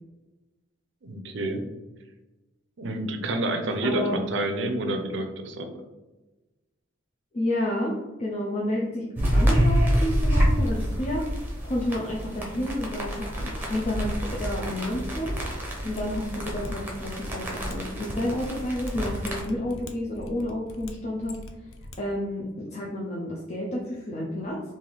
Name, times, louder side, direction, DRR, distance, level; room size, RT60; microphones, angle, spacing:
voice 1, 1.0-1.6 2.8-5.7, right 1 dB, 60° right, 5 dB, 0.5 m, -29 dB
voice 2, 3.8-4.2 7.3-15.4 15.8-21.7 22.0-24.6, left 1 dB, 35° left, -3 dB, 0.5 m, -30 dB
sound 1, 9.2-19.4, equal, 10° right, 0.7 m, -27 dB
Mechanisms, 15.9-22.0 22.2-22.3, left 1 dB, 80° left, 0.5 m, -43 dB
3.3 x 2.6 x 3.8 m, 1.1 s
head